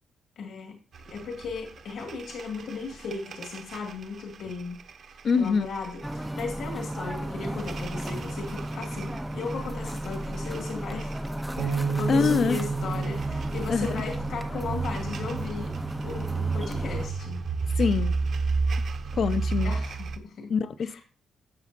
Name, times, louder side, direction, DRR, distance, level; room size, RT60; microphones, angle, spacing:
voice 1, 0.4-0.8 1.1-4.8 5.3-11.2 11.6-15.8 16.0-17.4 19.6-20.5 20.8-21.0, left 4 dB, 60° left, 1.8 m, -36 dB
sound 1, 0.9-20.2, right 4 dB, 45° right, 0.9 m, -34 dB
voice 2, 5.2-5.7 12.1-12.6 13.7-14.0 17.8-18.1 19.1-19.7 20.5-21.0, left 5 dB, 40° left, 0.6 m, -24 dB
sound 2, 6.0-17.1, right 1 dB, 5° right, 0.4 m, -34 dB
Bass guitar, 11.6-16.0 16.7-17.8, right 5 dB, 75° right, 1.4 m, -33 dB
12.5 x 7.7 x 2.5 m
cardioid pair, 175°, 0 cm